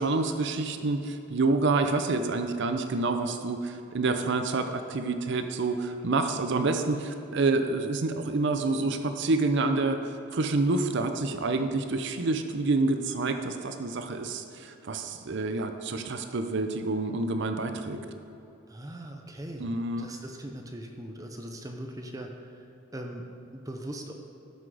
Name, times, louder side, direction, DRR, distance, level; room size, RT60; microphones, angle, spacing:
voice 1, 0.0-18.0 19.6-20.1, right 3 dB, 60° right, 7 dB, 0.6 m, -28 dB
voice 2, 18.7-19.7 20.0-24.1, right 1 dB, 15° right, 3 dB, 0.6 m, -40 dB
12.5 x 6.1 x 4.8 m, 2.8 s
head